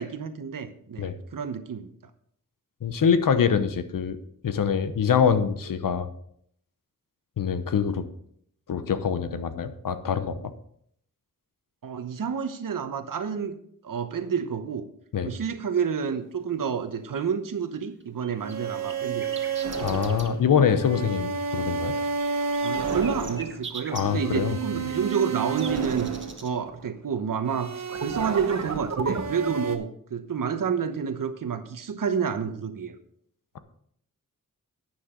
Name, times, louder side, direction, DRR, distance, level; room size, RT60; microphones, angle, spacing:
voice 1, 0.0-1.9 11.8-13.6 13.8-14.9 15.2-19.5 22.6-26.1 26.4-33.0, right 6 dB, 75° right, 9 dB, 1.1 m, -29 dB
voice 2, 2.8-4.2 4.4-6.1 7.4-8.1 8.7-10.5 15.1-15.3 19.8-21.9 23.9-24.8, left 7 dB, 80° left, 11 dB, 0.9 m, -24 dB
sound 1, 17.8-20.3 22.3-24.0 24.9-26.5, right 4 dB, 35° right, 1.7 m, -41 dB
sound 2, 18.4-26.9 27.5-29.8, right 5 dB, 55° right, 1.3 m, -30 dB
11.5 x 9.4 x 3.8 m, 0.67 s
wide cardioid pair, 95°, 33 cm